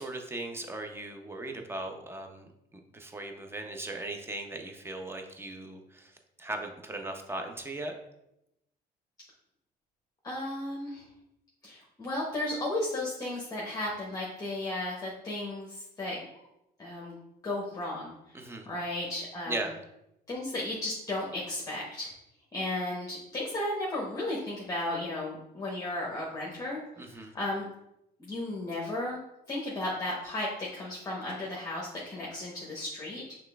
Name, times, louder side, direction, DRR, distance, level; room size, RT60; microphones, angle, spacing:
voice 1, 0.0-8.0 18.3-18.7 19.5-19.8 27.0-27.3, right 2 dB, 15° right, 4 dB, 0.6 m, -38 dB
voice 2, 10.2-11.0 11.6-16.2 16.8-17.1 17.4-18.1 18.7-19.6 20.3-22.1 22.5-26.8 27.1-27.7 28.2-29.2 29.5-33.2, left 1 dB, 20° left, -4 dB, 0.9 m, -34 dB
5.8 x 3.3 x 2.3 m, 0.84 s
cardioid pair, 110°, 17 cm